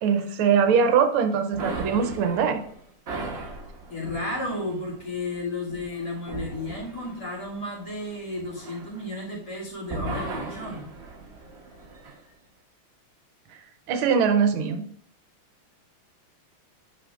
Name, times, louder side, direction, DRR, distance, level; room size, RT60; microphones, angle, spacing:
voice 1, 0.0-2.6 13.5-13.6 13.9-14.8, right 6 dB, 90° right, 8 dB, 1.6 m, -22 dB
sound 1, 1.5-9.5 9.8-12.2, right 3 dB, 40° right, 1.0 m, -38 dB
voice 2, 3.9-10.9, left 2 dB, 55° left, -5 dB, 2.7 m, -33 dB
8.6 x 5.5 x 2.4 m, 0.63 s
omnidirectional pair, 2.3 m